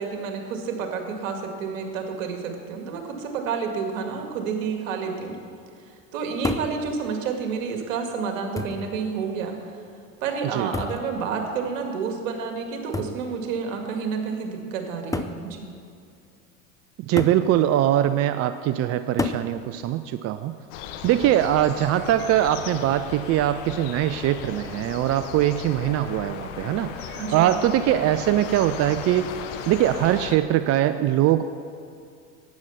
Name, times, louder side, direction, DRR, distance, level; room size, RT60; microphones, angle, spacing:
voice 1, 0.0-5.4 5.8-9.7 10.2-15.7 27.1-27.5, right 5 dB, 70° right, 4 dB, 2.1 m, -30 dB
sound 1, 6.4-6.8 7.8-7.9 8.6-8.9 10.7-11.1 12.9-13.2 14.3-14.4 15.1-15.4 17.2-17.5 19.2-19.5 21.0-21.4, left 3 dB, 10° left, 0.6 m, -29 dB
voice 2, 17.1-20.5 21.0-29.3 29.7-31.4, right 12 dB, 40° right, 11 dB, 0.5 m, -22 dB
sound 2, 20.7-30.4, left 8 dB, 65° left, 1.1 m, -36 dB
12.0 x 8.9 x 5.7 m, 2.4 s
hypercardioid pair, 80°, 39 cm